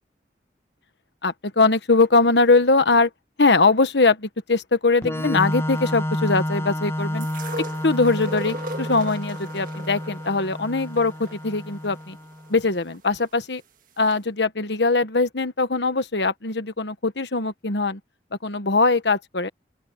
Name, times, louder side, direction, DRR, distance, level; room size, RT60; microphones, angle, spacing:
voice 1, 1.2-3.1 3.4-7.3 7.8-12.2 12.5-13.6 14.0-18.0 18.4-19.5, left 3 dB, 85° left, 1.3 m, -21 dB
Organ, 5.0-12.5, left 1 dB, 15° left, 1.0 m, -30 dB
sound 1, 7.2-13.2 14.1-14.2, right 1 dB, 50° right, 1.7 m, -37 dB
open air
head